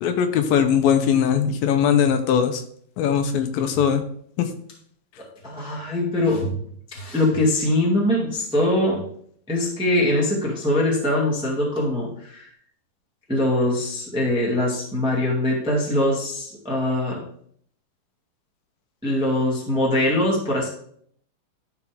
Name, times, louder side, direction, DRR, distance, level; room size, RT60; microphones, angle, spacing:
voice 1, 0.0-2.6 3.0-4.0 4.4-4.5, left 8 dB, 80° left, 8 dB, 2.5 m, -20 dB
voice 2, 5.4-6.6 6.9-9.0 9.5-12.5 13.3-17.2 19.0-20.7, left 1 dB, 5° right, -3 dB, 0.8 m, -22 dB
11.5 x 5.0 x 3.5 m, 0.63 s
omnidirectional pair, 4.2 m